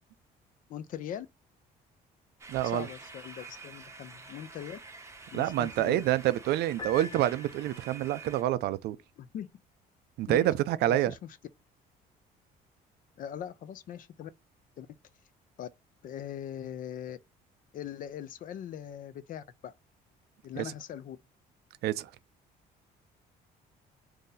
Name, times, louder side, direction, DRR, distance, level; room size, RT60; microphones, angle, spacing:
voice 1, 0.7-1.3 2.6-4.8 5.3-6.0 9.2-9.5 10.3-10.5 10.9-11.2 13.2-14.3 14.8-14.9 15.6-15.7 16.0-17.2 17.7-19.7 20.4-21.2, left 10 dB, 55° left, 0.4 m, -40 dB
sound 1, 2.4-8.4, right 3 dB, 15° right, 0.7 m, -48 dB
voice 2, 2.5-2.9 5.3-9.0 10.2-11.1 20.6-20.7 21.8-22.1, right 13 dB, 75° right, 0.4 m, -27 dB
Piano, 6.8-8.0, left 4 dB, 20° left, 0.9 m, -43 dB
2.7 x 2.6 x 3.8 m
cardioid pair, 110°, 17 cm